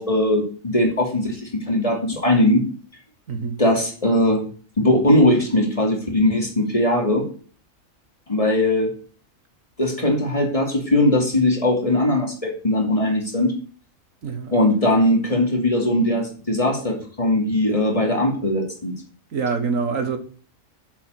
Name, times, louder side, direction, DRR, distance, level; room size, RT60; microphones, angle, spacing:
voice 1, 0.0-2.6 3.6-4.4 4.8-7.3 8.3-8.9 9.8-13.5 14.5-18.9, left 1 dB, 25° left, 2.9 m, -20 dB
voice 2, 14.2-14.5 19.3-20.2, right 5 dB, 75° right, 1.8 m, -25 dB
8.2 x 7.4 x 7.9 m
omnidirectional pair, 1.4 m